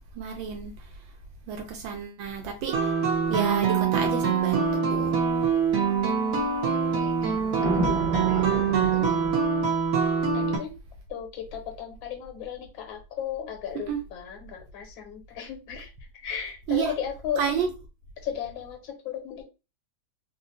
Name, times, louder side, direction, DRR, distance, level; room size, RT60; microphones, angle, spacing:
voice 1, 0.2-0.7 1.5-4.6 4.9-5.1 13.9-14.0 16.7-16.9 17.4-17.7, right 6 dB, 80° right, 1.3 m, -30 dB
sound 1, 2.7-10.6, right 6 dB, 60° right, 1.0 m, -24 dB
sound 2, 3.3-3.4 7.2-9.3, right 1 dB, 25° left, 0.8 m, -31 dB
voice 2, 6.9-7.4 7.7-7.9 8.3-8.4 8.7-9.2 10.3-10.7 11.1-17.5 18.2-19.4, left 8 dB, 75° left, 1.5 m, -36 dB
3.8 x 2.0 x 2.5 m
omnidirectional pair, 2.2 m